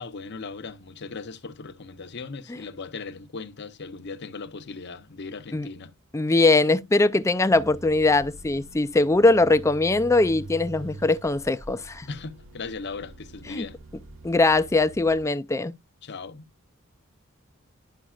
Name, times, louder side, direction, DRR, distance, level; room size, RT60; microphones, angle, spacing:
voice 1, 0.0-5.9 12.1-13.8 16.0-16.5, left 4 dB, 55° left, 0.8 m, -38 dB
voice 2, 6.1-12.1 13.5-13.6 14.2-15.8, left 2 dB, 15° left, 0.4 m, -21 dB
sound 1, 7.5-15.2, right 2 dB, 70° right, 1.4 m, -44 dB
11.5 x 5.3 x 2.4 m
head